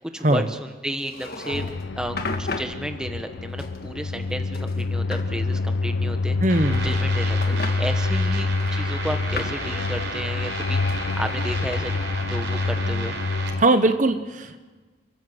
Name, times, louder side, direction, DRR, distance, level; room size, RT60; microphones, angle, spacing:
voice 1, 0.0-1.6 2.0-6.4 6.8-12.0 12.3-13.1, equal, 5° right, 6 dB, 1.3 m, -32 dB
sound 1, 1.0-1.8 2.2-2.8 3.6-4.3 4.5-5.3 6.4-7.1 7.4-7.8 8.6-9.7 10.9-11.8, left 3 dB, 55° left, 1.6 m, -34 dB
sound 2, 1.5-13.6, left 3 dB, 85° left, 0.6 m, -26 dB
voice 2, 6.4-6.9 13.6-14.6, right 2 dB, 40° right, 9 dB, 1.0 m, -20 dB
sound 3, 6.5-13.5, right 4 dB, 75° right, 4.1 m, -34 dB
30.0 x 14.0 x 7.9 m, 1.4 s
head